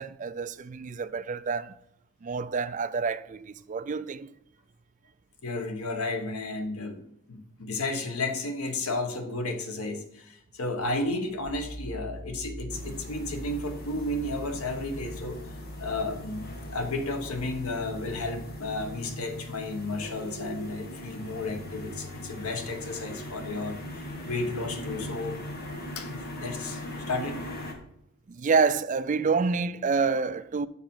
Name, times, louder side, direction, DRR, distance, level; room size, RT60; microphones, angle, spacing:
voice 1, 0.0-1.7 2.2-4.3 28.3-30.7, right 5 dB, 35° right, 0.3 m, -28 dB
voice 2, 5.4-25.3 26.0-27.4, left 2 dB, 85° left, 1.2 m, -33 dB
sound 1, 11.2-18.9, right 1 dB, 15° right, 1.5 m, -43 dB
sound 2, 12.7-27.7, left 1 dB, 45° left, 1.4 m, -40 dB
7.0 x 5.8 x 5.5 m
head